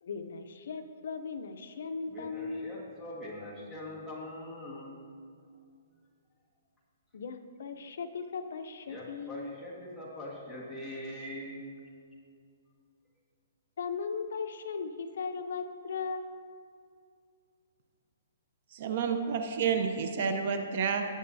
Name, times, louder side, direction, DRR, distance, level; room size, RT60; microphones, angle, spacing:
voice 1, 0.0-3.0 7.1-9.6 13.8-16.4, left 5 dB, 60° left, 8 dB, 0.6 m, -38 dB
voice 2, 2.1-5.0 8.9-11.6, left 1 dB, ahead, -8 dB, 1.7 m, -42 dB
voice 3, 18.7-21.1, right 6 dB, 45° right, 6 dB, 0.7 m, -30 dB
18.0 x 7.8 x 2.7 m, 2.3 s
hypercardioid pair, 170°, 0 cm